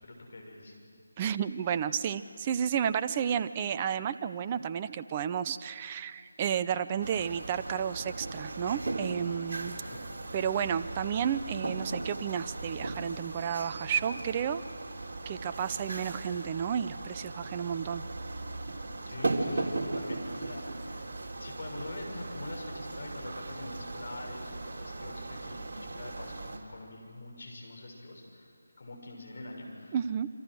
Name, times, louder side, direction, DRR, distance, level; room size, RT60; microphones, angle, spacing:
voice 1, 0.0-0.7 9.6-10.0 19.0-21.1 21.4-28.5 28.8-30.0, left 1 dB, 55° left, 1 dB, 6.5 m, -44 dB
voice 2, 1.2-9.8 10.3-14.6 15.3-18.0 29.9-30.3, right 8 dB, 25° right, 12 dB, 0.6 m, -32 dB
sound 1, 7.0-26.6, right 2 dB, 50° right, 3.5 m, -38 dB
27.5 x 25.5 x 6.4 m, 2.3 s
figure-of-eight pair, 160°, 0 cm